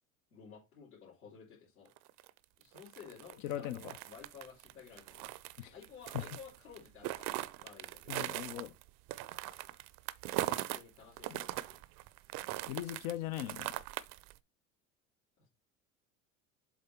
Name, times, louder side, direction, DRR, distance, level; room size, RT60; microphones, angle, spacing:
voice 1, 0.3-1.9 2.6-5.2 5.7-8.5 10.5-11.8 15.4-15.5, left 6 dB, 85° left, 3.2 m, -54 dB
sound 1, 2.0-10.8 11.2-14.4, right 16 dB, 50° right, 0.6 m, -40 dB
voice 2, 3.4-3.9 5.6-5.7 6.1-6.2 8.1-8.7 11.3-11.4 12.7-13.8, left 13 dB, 60° left, 0.7 m, -39 dB
7.4 x 3.6 x 4.2 m
hypercardioid pair, 75°, 42 cm